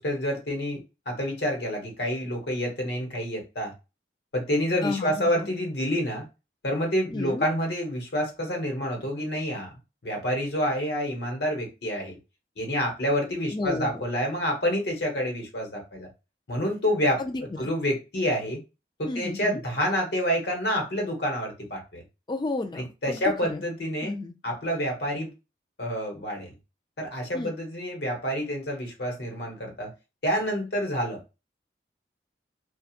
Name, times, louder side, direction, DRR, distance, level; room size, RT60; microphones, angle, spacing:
voice 1, 0.0-3.7 4.3-6.2 6.6-9.7 10.0-12.2 12.6-16.1 16.5-17.2 17.6-18.6 19.0-22.0 23.0-24.1 24.4-25.3 25.8-26.5 27.0-29.9 30.2-31.2, equal, 70° left, 1 dB, 1.0 m, -28 dB
voice 2, 4.8-5.5 7.1-7.4 13.5-14.0 17.2-17.7 19.1-19.6 22.3-23.6 24.0-24.3 27.3-27.5, left 2 dB, 25° left, 7 dB, 0.3 m, -32 dB
2.9 x 2.2 x 2.4 m, 0.28 s
head